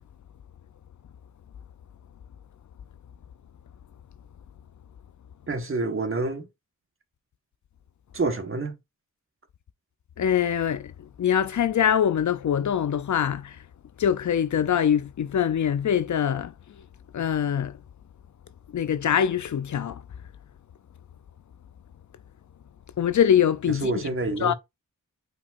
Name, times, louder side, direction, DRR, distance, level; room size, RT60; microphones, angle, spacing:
voice 1, 5.5-6.5 8.1-8.8 23.7-24.5, right 3 dB, 40° right, 1.3 m, -28 dB
voice 2, 10.2-10.9 11.2-13.6 14.0-16.5 17.1-17.8 18.7-20.0 23.0-23.9 24.4-24.5, left 9 dB, 60° left, 0.6 m, -23 dB
8.5 x 4.8 x 2.5 m
wide cardioid pair, 120°, 33 cm